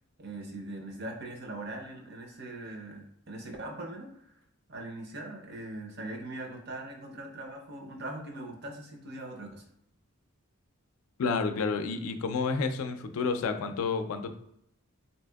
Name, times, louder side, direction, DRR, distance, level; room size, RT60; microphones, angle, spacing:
voice 1, 0.2-4.4 4.7-9.6, right 2 dB, 50° right, 2 dB, 0.6 m, -41 dB
voice 2, 11.2-14.4, left 4 dB, 80° left, 8 dB, 0.4 m, -30 dB
3.3 x 2.8 x 2.2 m, 0.76 s
head